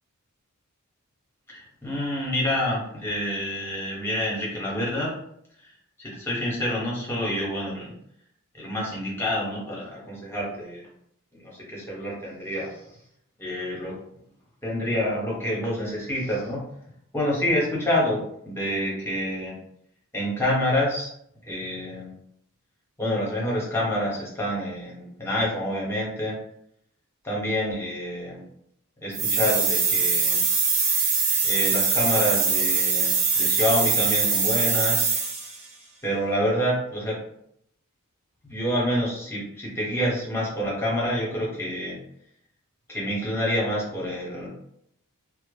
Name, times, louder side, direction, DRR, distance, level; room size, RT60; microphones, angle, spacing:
voice 1, 1.5-5.1 6.0-7.9 8.5-10.9 11.3-12.8 13.4-13.9 14.6-16.6 17.1-19.6 20.1-21.1 21.4-22.1 23.0-26.4 27.2-28.4 29.0-30.4 31.4-35.1 36.0-37.2 38.4-42.0 42.9-44.5, left 1 dB, 10° left, -5 dB, 0.9 m, -27 dB
sound 1, 29.1-35.6, right 5 dB, 30° right, 0.5 m, -23 dB
2.1 x 2.0 x 3.2 m, 0.72 s
head